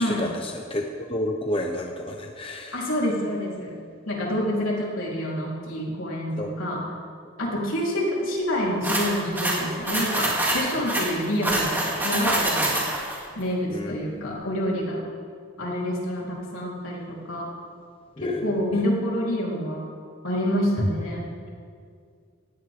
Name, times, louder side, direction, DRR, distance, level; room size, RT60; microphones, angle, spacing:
voice 1, 0.0-2.8 6.4-6.5 13.7-14.2 18.2-18.8 20.8-20.9, left 1 dB, 25° left, 2 dB, 1.0 m, -30 dB
voice 2, 2.7-3.8 4.1-6.8 7.4-11.7 12.0-12.8 13.4-15.0 15.6-17.5 18.2-19.9 20.2-21.2, equal, 75° left, -4 dB, 4.2 m, -27 dB
sound 1, 8.8-13.2, right 1 dB, 10° right, 2.9 m, -25 dB
19.0 x 16.5 x 3.8 m, 2.1 s
head